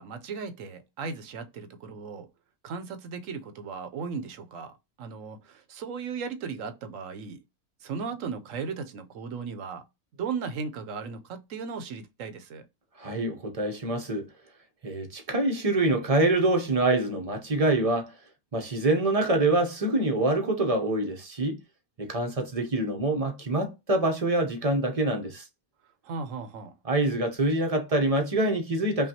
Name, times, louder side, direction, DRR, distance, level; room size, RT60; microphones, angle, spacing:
voice 1, 0.0-2.3 2.6-7.4 7.8-9.9 10.2-12.7 26.0-26.7, right 5 dB, 65° right, 1.0 m, -36 dB
voice 2, 13.0-14.3 14.8-18.2 18.5-21.6 22.0-25.5 26.8-29.1, right 2 dB, 35° right, 0.6 m, -25 dB
5.6 x 2.3 x 2.8 m
omnidirectional pair, 1.6 m